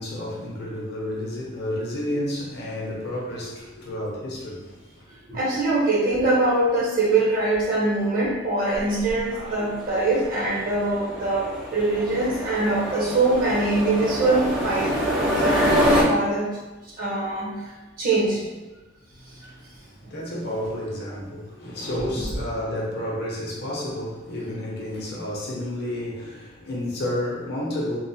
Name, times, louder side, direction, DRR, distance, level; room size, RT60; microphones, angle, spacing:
voice 1, 0.0-5.1 19.2-28.0, left 1 dB, 50° left, 0.7 m, -31 dB
voice 2, 5.3-14.9 15.4-16.5 16.8-18.5 21.9-22.1, right 2 dB, 45° right, 0.8 m, -23 dB
sound 1, 8.8-16.0, equal, 65° right, 0.9 m, -26 dB
2.8 x 2.1 x 2.7 m
head